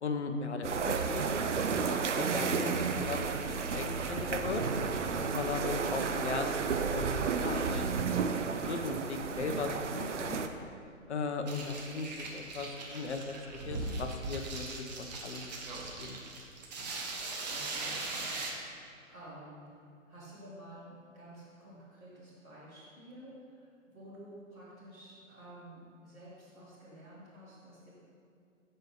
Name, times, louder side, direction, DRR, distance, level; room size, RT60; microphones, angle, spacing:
voice 1, 0.0-1.2 2.2-4.6 5.2-6.5 6.9-10.4 11.1-15.5 16.0-16.4, left 4 dB, 55° left, 6 dB, 0.8 m, -37 dB
sound 1, 0.6-10.5, right 5 dB, 60° right, 0.6 m, -32 dB
sound 2, 11.5-18.5, right 3 dB, 30° right, 1.0 m, -40 dB
voice 2, 17.4-19.8 20.0-27.9, right 1 dB, 5° right, -15 dB, 0.4 m, -51 dB
13.5 x 5.5 x 3.1 m, 2.4 s
figure-of-eight pair, 125°, 41 cm